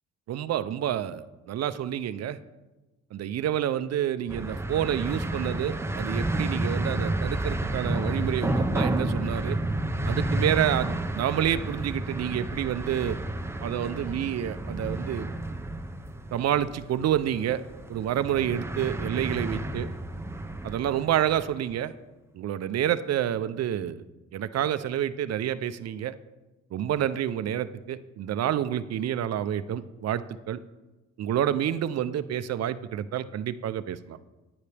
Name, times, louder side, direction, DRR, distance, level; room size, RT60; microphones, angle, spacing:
voice 1, 0.3-2.4 3.1-9.6 10.0-13.2 13.6-15.3 16.3-17.6 17.9-19.9 20.6-21.9 22.3-24.0 24.3-26.2 26.7-30.6 31.2-34.2, right 10 dB, 55° right, 14 dB, 0.6 m, -28 dB
sound 1, 4.3-21.5, right 1 dB, 10° right, 0.6 m, -31 dB
9.9 x 9.7 x 3.3 m, 1.1 s
cardioid pair, 90°, 30 cm